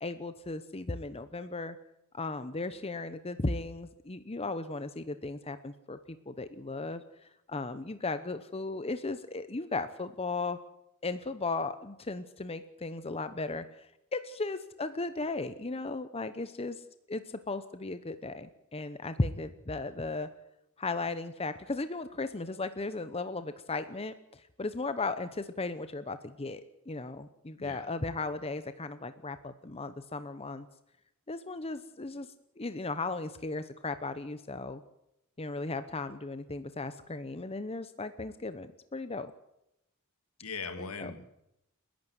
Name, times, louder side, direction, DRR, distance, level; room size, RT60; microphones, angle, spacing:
voice 1, 0.0-1.8 2.1-7.0 7.5-10.6 11.0-16.8 17.1-20.3 20.8-30.7 31.3-32.3 32.6-34.8 35.4-39.3 40.8-41.1, left 3 dB, 25° left, 11 dB, 0.9 m, -36 dB
voice 2, 40.4-41.3, left 4 dB, 70° left, 9 dB, 2.2 m, -39 dB
30.0 x 11.5 x 8.0 m, 0.84 s
head